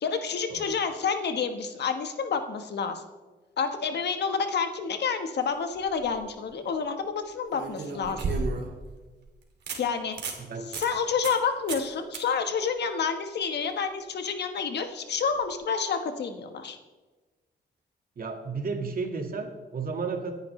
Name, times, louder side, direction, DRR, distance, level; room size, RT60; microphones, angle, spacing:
voice 1, 0.0-3.0 3.6-8.2 9.8-10.2 10.8-16.8, left 6 dB, 75° left, 7 dB, 1.3 m, -29 dB
sound 1, 5.8-6.1 7.5-8.8 9.2-9.3 9.7-9.8 10.1-10.4 10.7-10.9 11.2-11.4 11.7-11.9 12.1-12.2 15.3-15.4, right 4 dB, 75° right, 2.4 m, -32 dB
voice 2, 18.2-20.3, right 4 dB, 55° right, 4 dB, 1.9 m, -33 dB
24.5 x 10.5 x 3.2 m, 1.3 s
cardioid pair, 100°, 18 cm